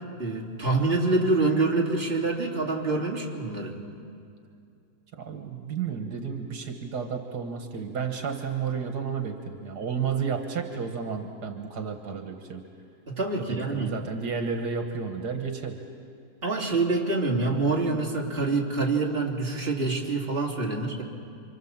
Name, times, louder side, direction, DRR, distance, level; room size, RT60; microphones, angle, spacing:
voice 1, 0.2-3.8 13.1-13.9 16.4-21.0, right 3 dB, 35° right, -2 dB, 3.2 m, -26 dB
voice 2, 5.1-12.6 13.4-15.8, right 6 dB, 85° right, 4 dB, 2.0 m, -32 dB
28.0 x 25.5 x 7.4 m, 2.5 s
omnidirectional pair, 1.7 m